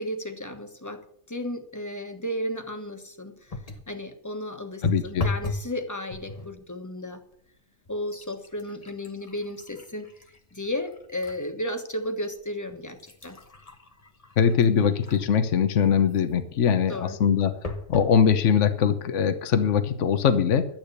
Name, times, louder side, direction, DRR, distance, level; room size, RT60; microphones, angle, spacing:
voice 1, 0.0-3.5 3.9-7.2 7.9-10.1 10.5-13.4 16.7-17.2, left 1 dB, 15° left, 6 dB, 1.4 m, -34 dB
sound 1, 3.5-3.9 4.8-5.7 6.1-6.6 7.3-7.5 7.9-11.4 11.9-12.0 12.7-15.4 17.6-18.2 18.8-18.9 19.2-19.3, left 3 dB, 30° left, 1.1 m, -36 dB
voice 2, 4.8-5.3 14.4-17.5 17.9-20.7, left 7 dB, 65° left, 11 dB, 1.2 m, -22 dB
12.0 x 8.5 x 6.7 m, 0.67 s
omnidirectional pair, 1.4 m